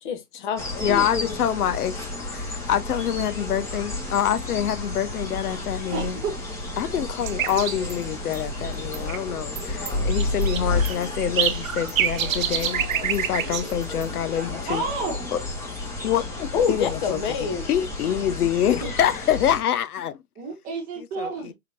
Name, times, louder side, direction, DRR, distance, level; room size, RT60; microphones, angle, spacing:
voice 1, 0.0-1.1 16.5-17.7, left 6 dB, 30° left, 0.9 m, -27 dB
sound 1, 0.6-19.6, left 2 dB, 5° left, 1.1 m, -31 dB
voice 2, 0.8-2.0 2.3-6.2 6.8-14.8 15.3-15.4 16.0-17.2 17.7-20.2 21.2-21.5, left 10 dB, 75° left, 0.8 m, -26 dB
voice 3, 5.9-6.3 14.7-15.3 18.6-18.9 20.4-21.5, right 4 dB, 20° right, 1.3 m, -31 dB
sound 2, 7.2-7.9 8.3-8.4 8.9-9.2 9.6-14.0, right 9 dB, 60° right, 0.8 m, -27 dB
4.8 x 3.6 x 2.5 m
hypercardioid pair, 155°, 45 cm